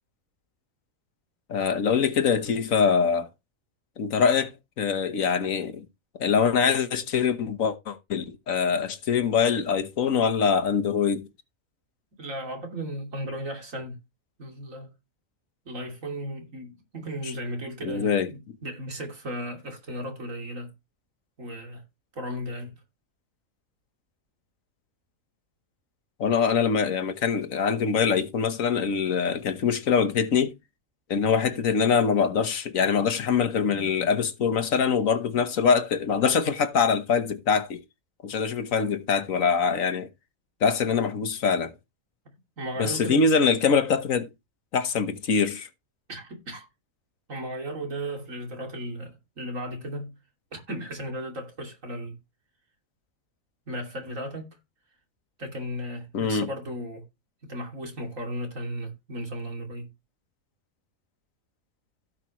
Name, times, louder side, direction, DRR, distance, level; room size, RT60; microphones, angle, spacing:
voice 1, 1.5-3.3 4.0-5.8 6.2-11.3 17.8-18.3 26.2-30.5 31.1-37.8 38.2-40.1 40.6-41.7 42.8-44.3 44.7-45.7 56.1-56.5, left 6 dB, 75° left, 1.5 m, -24 dB
voice 2, 12.2-14.0 14.4-14.9 15.6-20.7 21.4-21.8 22.1-22.8 42.6-43.3 46.1-46.7 47.3-50.1 50.5-52.2 53.7-54.5 55.4-57.0 57.4-59.9, equal, 70° right, 3.1 m, -35 dB
16.5 x 5.8 x 3.1 m
omnidirectional pair, 1.4 m